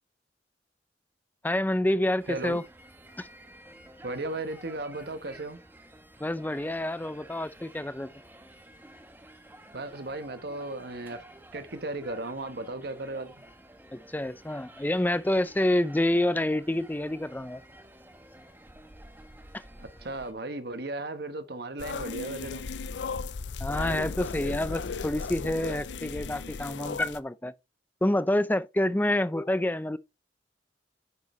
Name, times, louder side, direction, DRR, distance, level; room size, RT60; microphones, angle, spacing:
voice 1, 1.4-2.6 3.2-3.3 6.2-8.1 13.9-17.6 23.6-27.5 28.0-30.0, left 1 dB, 10° left, 0.5 m, -28 dB
sound 1, 2.2-20.3, right 1 dB, 10° right, 1.2 m, -51 dB
voice 2, 2.3-2.6 4.0-5.6 9.7-11.2 11.5-13.4 19.8-22.6, right 2 dB, 60° right, 1.3 m, -36 dB
sound 2, 21.8-27.2, left 4 dB, 80° left, 0.6 m, -35 dB
9.8 x 6.8 x 3.2 m
head